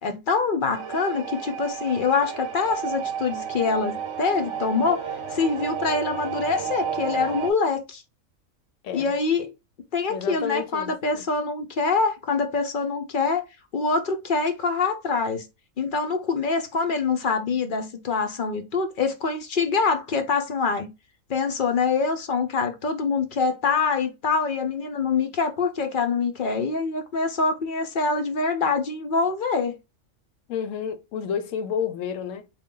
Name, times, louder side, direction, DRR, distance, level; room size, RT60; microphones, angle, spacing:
voice 1, 0.0-5.0 5.3-8.0 8.9-9.5 9.9-13.4 13.7-15.5 15.8-20.9 21.3-29.7, left 4 dB, 55° left, 0.6 m, -25 dB
sound 1, 0.7-7.5, right 7 dB, 70° right, 0.9 m, -32 dB
voice 2, 10.1-11.2 30.5-32.5, left 7 dB, 75° left, 0.9 m, -30 dB
3.8 x 2.2 x 3.6 m
omnidirectional pair, 1.4 m